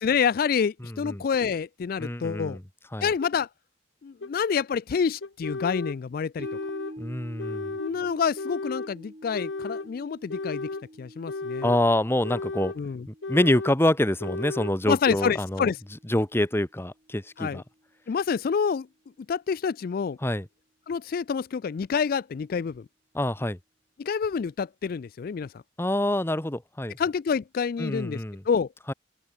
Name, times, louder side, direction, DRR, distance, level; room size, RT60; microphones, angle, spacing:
voice 1, 0.0-2.6 3.0-3.5 4.0-6.5 7.8-10.7 11.0-11.7 12.8-13.1 14.8-15.8 17.4-17.6 18.1-18.9 19.3-20.2 20.9-22.8 24.0-25.6 27.0-28.7, left 6 dB, 50° left, 0.3 m, -27 dB
voice 2, 2.0-2.6 2.9-3.1 7.0-7.7 11.6-12.7 13.1-15.7 16.1-17.6 20.2-20.4 23.1-23.6 25.8-27.0 27.8-28.4 28.9-29.0, left 1 dB, 15° left, 1.1 m, -26 dB
sound 1, 3.2-3.3 4.2-4.3 5.2-6.0 6.4-7.0 7.4-7.9 8.4-8.9 9.3-9.9 10.3-10.9 11.3-11.8 12.2-12.8 13.2-13.8 14.2-14.8, left 3 dB, 75° left, 1.0 m, -34 dB
sound 2, 6.4-16.8 17.1-17.2, equal, 35° right, 6.6 m, -47 dB
open air
head